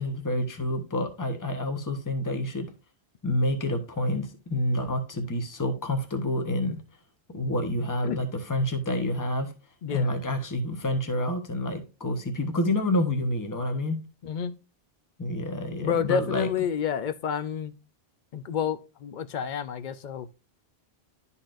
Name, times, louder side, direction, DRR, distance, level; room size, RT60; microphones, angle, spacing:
voice 1, 0.0-2.7 3.2-6.8 7.3-9.5 9.9-14.0 15.2-16.5, left 1 dB, 20° left, 0.9 m, -28 dB
voice 2, 14.2-14.6 15.8-17.7 18.3-20.3, left 8 dB, 55° left, 0.6 m, -29 dB
11.5 x 4.2 x 2.5 m
omnidirectional pair, 1.1 m